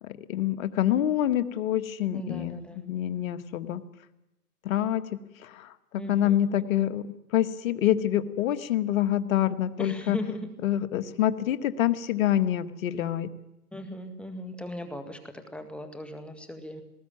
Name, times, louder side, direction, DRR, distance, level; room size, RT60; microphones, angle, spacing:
voice 1, 0.0-3.8 4.7-5.7 6.1-7.0 7.3-10.2 10.6-13.3, left 12 dB, 60° left, 10 dB, 1.6 m, -26 dB
voice 2, 2.1-2.8 6.0-6.5 9.8-10.5 13.7-16.8, left 1 dB, ahead, 7 dB, 1.9 m, -38 dB
19.5 x 19.0 x 8.8 m, 0.87 s
hypercardioid pair, 135°, 46 cm